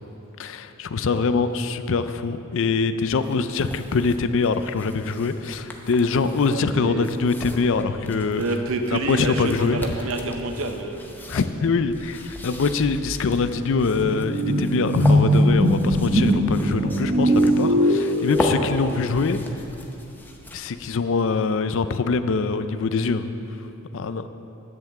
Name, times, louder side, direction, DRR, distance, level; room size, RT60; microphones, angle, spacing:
voice 1, 0.4-8.4 8.9-9.8 11.3-19.4 20.5-23.3 23.9-24.3, left 4 dB, 60° left, 11 dB, 0.4 m, -24 dB
sound 1, 3.1-20.8, left 1 dB, 10° left, 0.7 m, -37 dB
voice 2, 6.5-7.1 8.3-11.1, right 2 dB, 65° right, 5 dB, 0.8 m, -28 dB
sound 2, 12.4-12.5 12.8-19.0, equal, 30° right, 1.1 m, -21 dB
10.5 x 5.8 x 7.6 m, 2.9 s
head